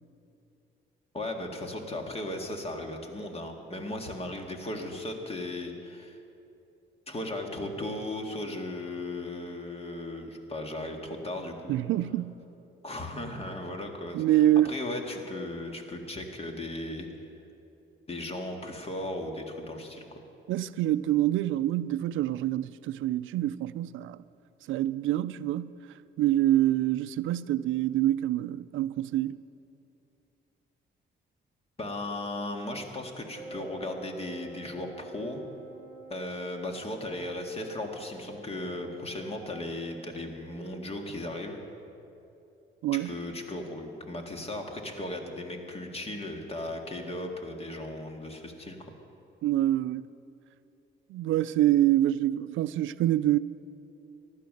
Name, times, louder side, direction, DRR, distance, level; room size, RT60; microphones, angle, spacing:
voice 1, 1.1-6.2 7.1-11.8 12.8-17.1 18.1-20.2 31.8-35.4 36.1-41.6 42.9-48.8, left 1 dB, 30° left, 2.0 m, -36 dB
voice 2, 11.7-12.4 14.1-14.7 20.5-24.2 24.7-25.7 26.2-29.4 42.8-43.1 49.4-50.1 51.1-53.4, right 13 dB, 80° right, 0.5 m, -26 dB
Wind instrument woodwind instrument, 33.3-40.0, right 2 dB, 5° left, 3.9 m, -48 dB
15.0 x 11.5 x 6.6 m
cardioid pair, 90°, 20 cm